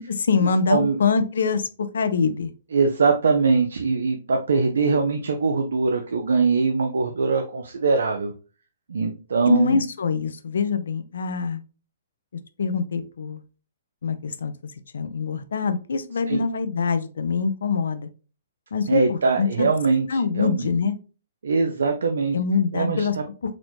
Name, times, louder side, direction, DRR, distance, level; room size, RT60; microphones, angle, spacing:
voice 1, 0.2-2.5 9.5-11.6 12.6-13.4 14.0-14.5 14.9-18.1 18.7-19.7 20.1-20.9 22.3-23.1, left 5 dB, 80° left, 11 dB, 0.4 m, -24 dB
voice 2, 2.7-8.3 8.9-9.8 16.3-16.4 18.9-20.7 21.4-22.4 22.7-23.2, right 4 dB, 80° right, 5 dB, 0.4 m, -22 dB
4.0 x 2.0 x 3.0 m, 0.35 s
hypercardioid pair, 140°, 0 cm